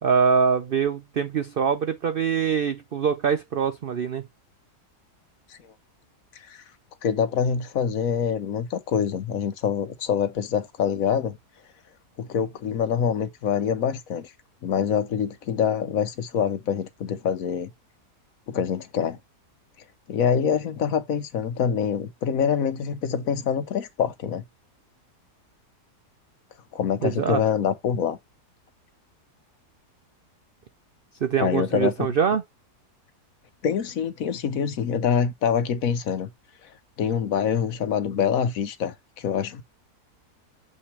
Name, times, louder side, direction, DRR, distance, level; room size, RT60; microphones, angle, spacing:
voice 1, 0.0-4.2 27.0-27.4 31.2-32.4, right 6 dB, 75° right, 0.5 m, -23 dB
voice 2, 6.3-6.6 7.0-11.4 12.2-14.3 14.6-17.7 18.5-19.2 20.1-24.4 26.7-28.2 31.4-32.1 33.6-36.3 36.6-36.7 37.0-39.6, left 7 dB, 65° left, 1.2 m, -25 dB
6.7 x 5.8 x 3.2 m
omnidirectional pair, 1.7 m